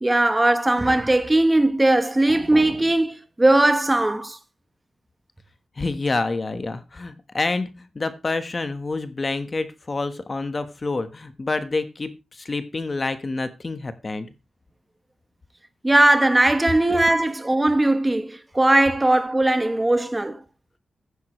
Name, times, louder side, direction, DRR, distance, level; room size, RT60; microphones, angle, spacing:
voice 1, 0.0-4.4 15.8-20.4, right 1 dB, 15° right, 1.1 m, -19 dB
voice 2, 5.8-14.3, left 3 dB, 30° left, 1.3 m, -28 dB
15.0 x 9.7 x 3.2 m
wide cardioid pair, 130°, 0 cm